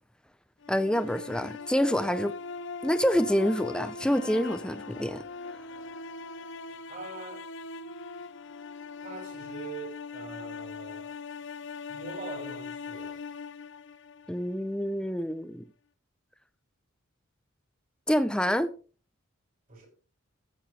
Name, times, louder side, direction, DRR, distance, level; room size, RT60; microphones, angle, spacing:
sound 1, 0.6-14.7, left 4 dB, 55° left, 0.6 m, -41 dB
voice 1, 0.7-2.3 2.8-5.2 14.3-15.6 18.1-18.7, equal, 5° left, 0.6 m, -27 dB
voice 2, 6.7-7.5 9.0-11.2 11.9-13.2 19.7-19.9, right 3 dB, 40° right, 5.3 m, -43 dB
15.0 x 8.5 x 3.4 m
head